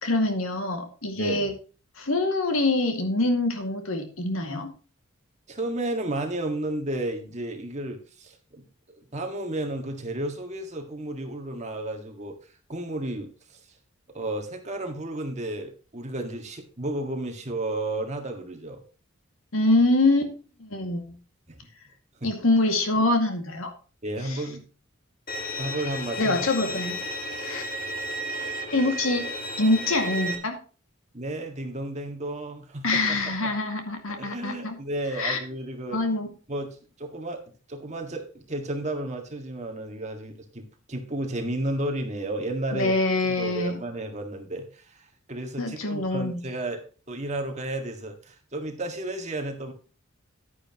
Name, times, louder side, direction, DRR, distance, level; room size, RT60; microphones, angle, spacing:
voice 1, 0.0-1.5 2.0-4.7 19.5-20.3 20.6-21.2 22.2-23.7 24.2-24.4 26.2-27.0 27.4-27.6 28.7-29.2 29.6-30.6 32.8-34.8 35.1-35.4 35.9-36.3 42.7-43.8 45.6-46.4, left 2 dB, 75° left, 5 dB, 2.1 m, -25 dB
voice 2, 1.1-1.5 5.5-12.4 12.7-13.6 14.1-18.8 21.5-21.6 22.2-22.3 24.0-24.6 25.6-26.4 31.1-33.5 34.2-36.0 36.5-36.7 37.0-42.9 43.3-49.7, right 1 dB, 30° right, 4 dB, 1.8 m, -33 dB
Bowed string instrument, 25.3-30.4, equal, 45° left, 2.0 m, -33 dB
11.0 x 9.7 x 3.0 m, 0.37 s
head